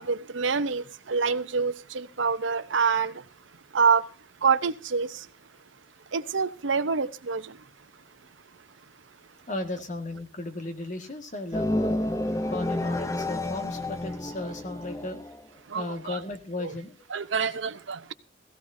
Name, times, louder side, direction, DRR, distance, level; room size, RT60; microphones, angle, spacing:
voice 1, 0.0-3.3 3.7-4.1 4.4-5.3 6.1-7.6 15.7-16.2 16.6-16.7 17.1-18.1, right 5 dB, 90° right, 0.8 m, -26 dB
voice 2, 9.5-11.9 12.5-15.2 15.7-17.0, left 2 dB, 45° left, 1.8 m, -35 dB
sound 1, 11.5-15.4, left 1 dB, 15° left, 0.7 m, -30 dB
17.0 x 16.0 x 2.7 m
head